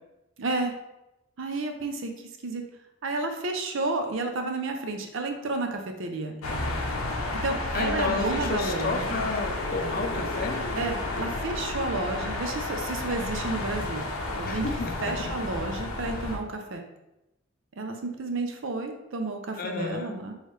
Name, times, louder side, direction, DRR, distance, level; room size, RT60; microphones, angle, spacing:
voice 1, 0.4-0.7 1.4-2.1 2.4-2.6 3.0-6.4 7.2-9.2 10.8-14.7 15.0-16.8 17.8-20.3, right 2 dB, 70° right, 5 dB, 0.5 m, -31 dB
sound 1, 6.4-16.4, left 2 dB, 85° left, 0.6 m, -31 dB
voice 2, 7.7-10.6 14.4-15.3 19.6-20.2, left 3 dB, 45° left, 5 dB, 0.5 m, -31 dB
4.6 x 3.1 x 3.1 m, 0.93 s
head